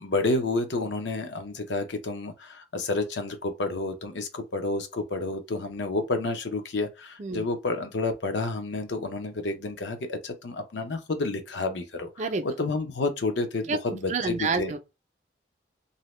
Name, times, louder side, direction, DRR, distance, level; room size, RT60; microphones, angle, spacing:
voice 1, 0.0-12.1 12.4-14.7, left 3 dB, 80° left, 0.6 m, -30 dB
voice 2, 13.7-14.8, right 4 dB, 40° right, 0.4 m, -29 dB
2.6 x 2.1 x 3.1 m
head